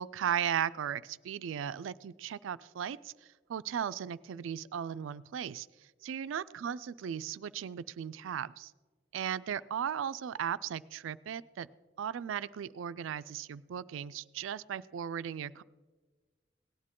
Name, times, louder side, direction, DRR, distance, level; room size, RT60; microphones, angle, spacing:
voice 1, 0.0-3.1 3.5-5.7 6.0-8.7 9.1-11.7 12.0-15.6, right 8 dB, 85° right, 16 dB, 0.3 m, -36 dB
17.5 x 9.7 x 3.7 m, 1.3 s
head